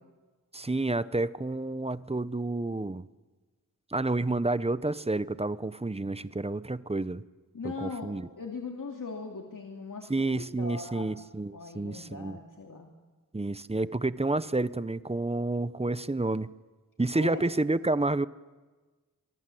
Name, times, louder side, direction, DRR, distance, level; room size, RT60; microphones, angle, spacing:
voice 1, 0.5-3.1 3.9-7.2 7.8-8.3 10.1-12.4 13.3-16.5 17.0-18.3, right 2 dB, 20° right, 16 dB, 0.7 m, -29 dB
voice 2, 7.5-11.2 11.5-12.9 17.1-17.4, left 4 dB, 65° left, 1 dB, 2.5 m, -40 dB
26.0 x 23.5 x 7.7 m, 1.3 s
wide cardioid pair, 80°, 34 cm